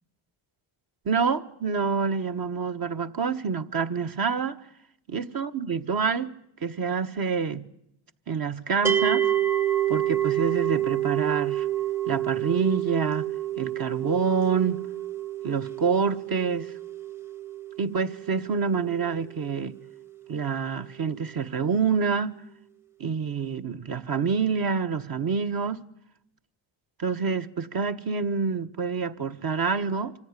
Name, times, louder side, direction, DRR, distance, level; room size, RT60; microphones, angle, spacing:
voice 1, 1.0-4.6 5.1-6.3 6.6-7.7 8.3-9.3 9.9-11.7 12.1-13.3 13.6-14.8 15.4-16.7 17.8-19.7 20.3-22.4 23.0-25.8 27.0-30.1, right 5 dB, 45° right, 1.4 m, -27 dB
sound 1, 8.8-20.0, right 11 dB, 5° right, 0.8 m, -29 dB
25.0 x 15.5 x 9.9 m
cardioid pair, 90°, 49 cm